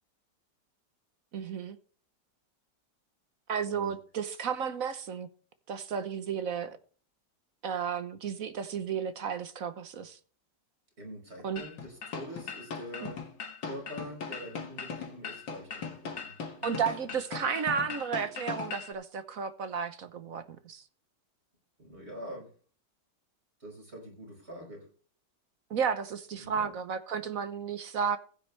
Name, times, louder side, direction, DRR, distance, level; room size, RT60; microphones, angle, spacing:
voice 1, 1.3-1.8 3.5-5.3 5.7-6.8 7.6-10.2 11.4-11.6 16.6-20.8 25.7-28.2, right 7 dB, 55° right, 1.2 m, -33 dB
voice 2, 11.0-13.2 13.6-16.7 21.8-22.5 23.6-24.9 26.4-26.7, equal, 35° right, 6.0 m, -45 dB
sound 1, 11.6-18.9, left 5 dB, 75° left, 2.4 m, -39 dB
15.0 x 9.5 x 3.3 m
omnidirectional pair, 2.0 m